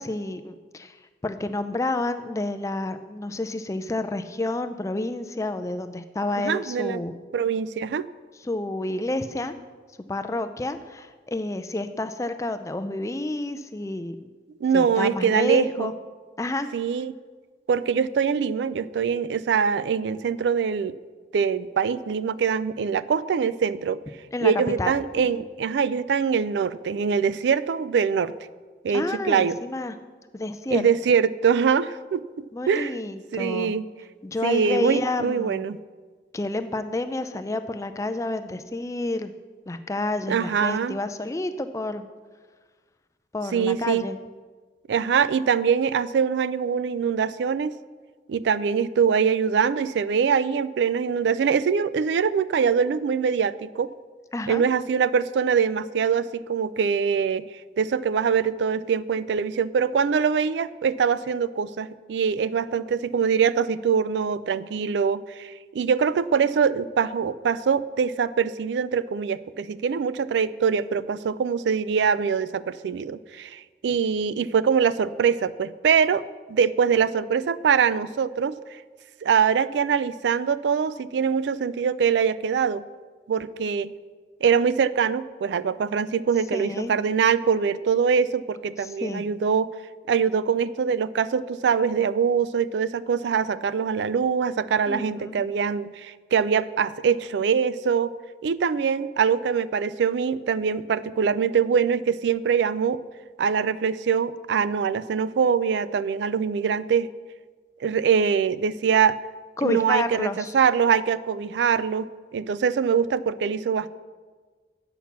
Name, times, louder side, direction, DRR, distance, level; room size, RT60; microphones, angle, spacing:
voice 1, 0.0-7.2 8.4-9.6 10.1-14.3 14.7-16.0 16.4-16.7 24.3-24.5 24.8-24.9 25.3-25.4 28.9-30.0 30.3-30.8 32.5-33.7 34.2-35.6 36.3-39.3 39.7-42.1 43.3-44.2 54.3-54.6 86.5-86.9 88.8-89.2 94.9-95.3 109.6-110.5, left 2 dB, 15° left, 10 dB, 0.4 m, -29 dB
voice 2, 6.4-7.0 7.3-8.1 14.6-15.9 16.7-17.1 17.7-21.0 21.3-24.0 24.4-28.4 28.8-29.6 30.7-32.9 33.3-33.9 34.4-35.8 40.3-41.0 43.5-44.0 44.9-47.8 48.3-53.9 54.5-57.5 57.8-78.8 79.2-82.8 83.3-83.9 84.4-89.7 90.1-98.1 98.4-103.0 103.4-107.1 107.8-109.2 109.6-113.9, right 6 dB, 85° right, 17 dB, 0.3 m, -23 dB
8.5 x 5.8 x 7.1 m, 1.5 s
head